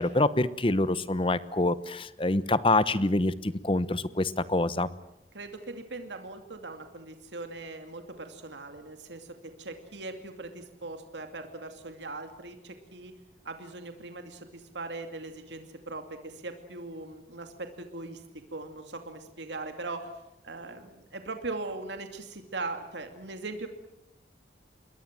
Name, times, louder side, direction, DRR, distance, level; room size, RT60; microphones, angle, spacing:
voice 1, 0.0-4.9, left 2 dB, 30° left, 16 dB, 1.0 m, -26 dB
voice 2, 5.3-13.1 13.4-18.2 18.5-20.1 20.4-23.7, right 3 dB, 85° right, 6 dB, 2.5 m, -40 dB
28.0 x 21.5 x 7.5 m, 0.86 s
head